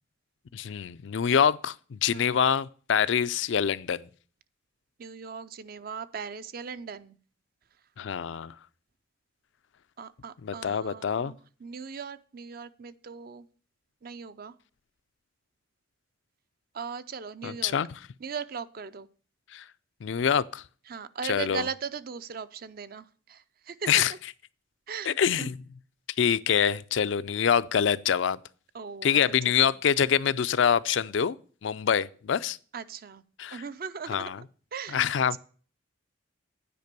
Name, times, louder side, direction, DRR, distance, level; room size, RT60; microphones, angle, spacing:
voice 1, 0.5-4.1 8.0-8.5 10.4-11.3 17.4-18.0 19.5-19.6 20.0-20.6 21.2-21.7 23.9-24.1 25.1-25.6 26.2-28.4 29.0-31.4 31.6-32.6 33.4-33.6 34.1-34.4 34.9-35.4, left 8 dB, 70° left, 0.4 m, -25 dB
voice 2, 5.0-7.2 10.0-13.5 14.0-14.5 16.7-17.8 18.2-19.1 20.9-24.0 24.9-25.5 28.7-29.8 32.7-33.2 33.5-34.5 34.7-35.4, right 6 dB, 50° right, 0.5 m, -39 dB
9.3 x 5.2 x 6.7 m
head